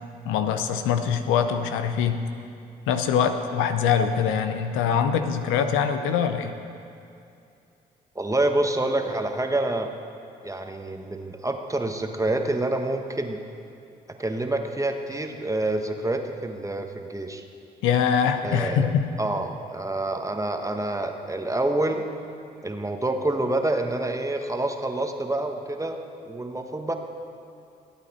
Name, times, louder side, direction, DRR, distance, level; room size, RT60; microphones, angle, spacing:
voice 1, 0.2-2.2 2.9-6.5 17.8-19.1, left 7 dB, 75° left, 8 dB, 0.7 m, -23 dB
voice 2, 8.1-9.9 10.4-13.4 14.2-17.4 18.4-18.9 19.2-22.0 22.6-26.9, right 2 dB, 15° right, 4 dB, 1.3 m, -27 dB
17.5 x 8.9 x 4.3 m, 2.6 s
hypercardioid pair, 45°, 20 cm